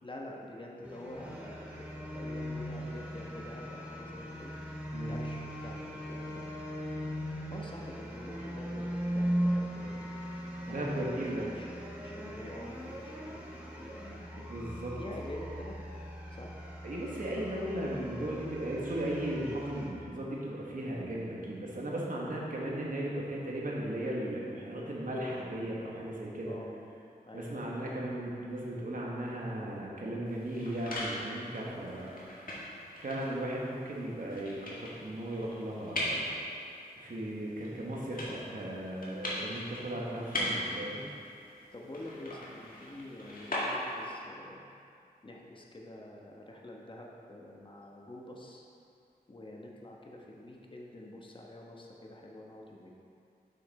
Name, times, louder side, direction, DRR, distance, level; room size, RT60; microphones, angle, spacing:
voice 1, 0.0-4.6 5.1-6.5 7.5-10.0 10.6-13.4 13.8-14.5 15.0-15.8 16.3-16.5 26.4-26.7 27.2-28.0 31.8-32.1 41.7-44.7 45.2-48.6 49.3-52.9, left 1 dB, 30° left, -1 dB, 1.2 m, -47 dB
sound 1, 0.8-19.9, equal, 10° right, 1.6 m, -39 dB
voice 2, 10.7-11.5 14.5-15.0 16.8-26.6 27.3-32.2 33.0-36.2 37.0-41.0, right 1 dB, 55° right, -4 dB, 1.6 m, -36 dB
sound 2, 30.3-44.2, left 1 dB, 60° left, 1.8 m, -40 dB
6.8 x 5.8 x 4.4 m, 2.5 s
cardioid pair, 50°, 17 cm